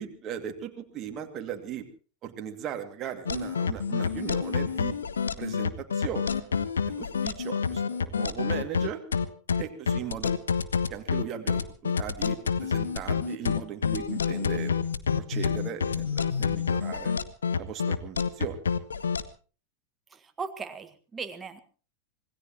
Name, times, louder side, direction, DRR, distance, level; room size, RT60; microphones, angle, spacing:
voice 1, 0.0-1.9 2.2-5.0 5.4-6.5 6.9-9.0 9.6-10.3 10.9-14.7 15.1-17.2 17.6-18.6, right 9 dB, 30° right, 5 dB, 2.4 m, -37 dB
sound 1, 3.3-19.2, left 6 dB, 70° left, 1.0 m, -28 dB
voice 2, 20.1-21.6, right 5 dB, 15° right, 8 dB, 1.6 m, -38 dB
26.0 x 18.0 x 3.0 m, 0.38 s
figure-of-eight pair, 90°, 0 cm